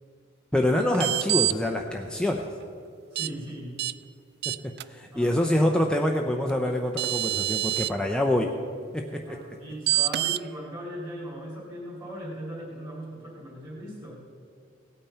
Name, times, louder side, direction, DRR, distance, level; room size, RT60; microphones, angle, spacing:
voice 1, 0.5-2.5 4.5-4.6 4.9-8.5 8.9-9.2, left 1 dB, 5° left, 1 dB, 0.6 m, -25 dB
sound 1, 0.9-1.5 3.2-3.3 3.8-3.9 4.4-4.8 6.5-6.6 7.0-7.9 9.9-10.4, right 15 dB, 50° right, 0.3 m, -26 dB
voice 2, 3.1-3.7 5.1-5.5 9.3-14.1, equal, 15° right, -7 dB, 2.6 m, -38 dB
17.0 x 8.9 x 5.6 m, 2.4 s
head